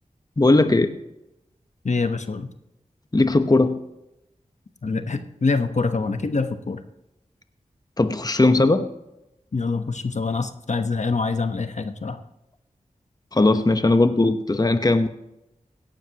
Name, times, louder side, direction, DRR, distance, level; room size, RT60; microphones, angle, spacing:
voice 1, 0.4-0.9 3.1-3.8 8.0-8.9 13.3-15.1, left 2 dB, 30° left, 9 dB, 0.9 m, -18 dB
voice 2, 1.8-2.5 4.8-6.8 9.5-12.2, left 4 dB, 60° left, 8 dB, 1.0 m, -25 dB
17.0 x 11.5 x 2.9 m, 0.89 s
cardioid pair, 50°, 14 cm